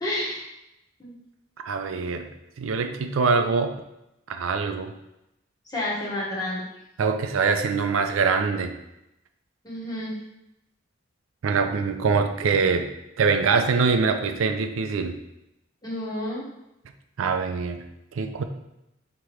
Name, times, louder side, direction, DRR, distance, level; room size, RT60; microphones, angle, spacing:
voice 1, 0.0-0.5 1.0-1.1 5.7-6.6 9.6-10.1 15.8-16.4, left 1 dB, 20° left, -6 dB, 1.0 m, -30 dB
voice 2, 1.6-2.3 2.6-3.7 4.3-4.9 7.0-8.7 11.4-12.9 13.2-15.1 17.2-17.8 18.2-18.4, right 5 dB, 85° right, 7 dB, 0.4 m, -23 dB
4.9 x 2.9 x 3.1 m, 0.87 s
head